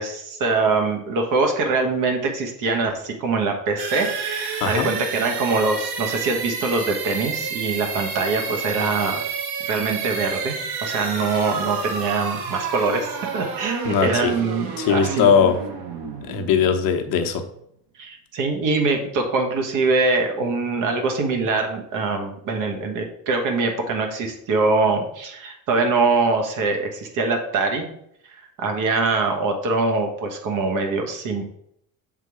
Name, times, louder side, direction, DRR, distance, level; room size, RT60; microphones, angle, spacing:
voice 1, 0.0-9.2 9.7-10.5 10.8-15.3 18.0-27.9 28.3-31.4, right 3 dB, 60° right, 3 dB, 1.5 m, -23 dB
sound 1, 3.8-17.5, right 5 dB, 85° right, 1.2 m, -30 dB
voice 2, 13.9-14.3 14.8-15.6 16.2-17.4, left 6 dB, 65° left, 5 dB, 0.9 m, -20 dB
7.5 x 3.8 x 4.9 m, 0.71 s
cardioid pair, 180°, 36 cm